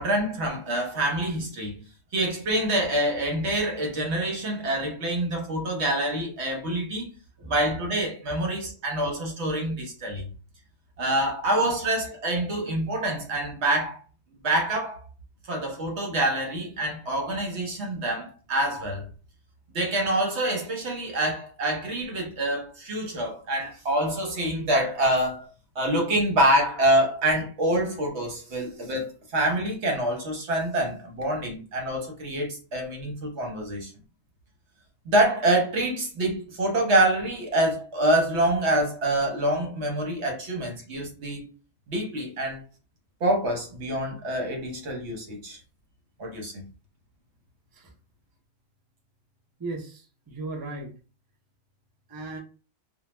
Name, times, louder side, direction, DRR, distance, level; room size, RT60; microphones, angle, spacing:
voice 1, 0.0-1.8 2.1-7.1 7.5-10.3 11.0-14.0 14.4-15.0 15.5-19.1 19.7-25.5 25.8-29.1 29.3-33.9 35.1-41.5 41.9-42.6 43.2-45.6 46.2-46.6, right 1 dB, 65° right, 1.1 m, -26 dB
voice 2, 49.6-50.9 52.1-52.4, right 2 dB, 25° right, 0.5 m, -37 dB
2.3 x 2.2 x 3.0 m
omnidirectional pair, 1.2 m